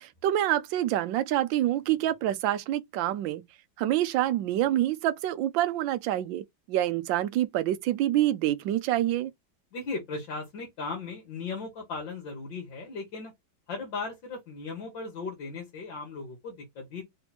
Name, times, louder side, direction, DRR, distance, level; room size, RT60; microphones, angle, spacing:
voice 1, 0.0-3.4 3.8-9.3, right 13 dB, 80° right, 1.3 m, -27 dB
voice 2, 9.7-13.3 13.7-17.0, left 4 dB, 70° left, 2.2 m, -37 dB
4.4 x 2.9 x 4.1 m
omnidirectional pair, 2.1 m